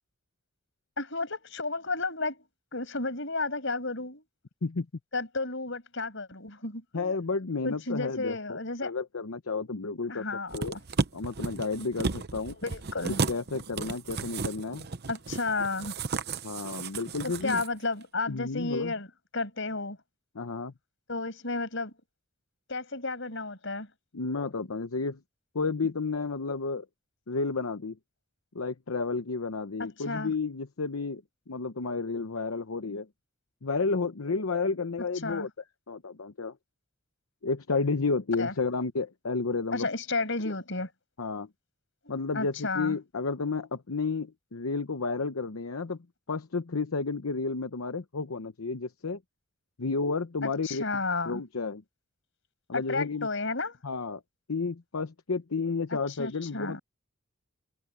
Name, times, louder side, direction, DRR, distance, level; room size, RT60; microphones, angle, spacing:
voice 1, 1.0-2.4 2.7-4.2 5.1-7.1 7.6-8.9 10.1-10.6 12.6-13.2 15.1-15.9 17.2-19.1 19.3-20.0 21.1-21.9 22.7-23.9 29.8-30.3 35.2-35.5 38.4-38.5 39.7-40.9 42.3-43.0 50.4-51.4 52.7-53.7 56.1-56.8, left 3 dB, 60° left, 6.9 m, -32 dB
voice 2, 6.9-10.2 10.5-10.8 11.1-12.6 13.3-14.9 16.4-17.6 18.3-18.9 20.3-20.7 24.1-25.2 25.5-26.9 27.3-28.0 28.5-31.2 31.5-33.1 33.6-35.5 35.9-36.6 37.4-39.9 40.4-40.5 41.2-41.5 42.1-46.0 46.3-49.2 49.8-50.8 51.3-51.8 52.7-53.3 53.8-54.2 54.5-56.8, left 4 dB, 75° left, 0.9 m, -31 dB
sound 1, 10.5-17.7 18.0-18.1, right 4 dB, 50° right, 0.8 m, -34 dB
head